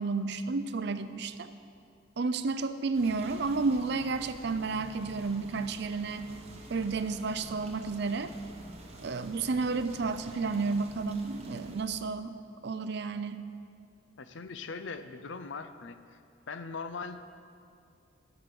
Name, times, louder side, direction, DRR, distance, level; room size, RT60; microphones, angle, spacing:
voice 1, 0.0-1.5 2.2-6.3 6.7-8.3 9.0-12.3 12.6-13.4, right 4 dB, 55° right, 10 dB, 0.5 m, -31 dB
sound 1, 2.9-11.8, right 1 dB, 30° right, 1.0 m, -49 dB
voice 2, 14.2-16.0 16.5-17.4, left 4 dB, 65° left, 10 dB, 0.6 m, -40 dB
10.0 x 7.8 x 6.8 m, 2.4 s
head